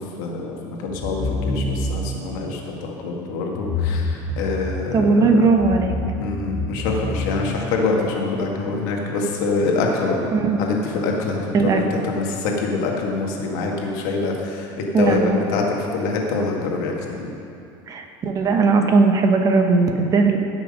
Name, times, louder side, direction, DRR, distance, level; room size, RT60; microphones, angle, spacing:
voice 1, 0.2-5.5 6.2-10.2 10.6-15.6 15.9-17.3, left 3 dB, 90° left, 0 dB, 1.8 m, -25 dB
sound 1, 0.9-2.2 3.5-5.0 5.5-8.0, left 2 dB, 20° left, 1.1 m, -27 dB
voice 2, 4.9-6.0 10.3-10.6 11.5-11.8 14.9-15.4 17.9-20.4, right 4 dB, 35° right, 4 dB, 1.0 m, -18 dB
16.0 x 6.2 x 5.4 m, 2.6 s
cardioid pair, 135°, 10 cm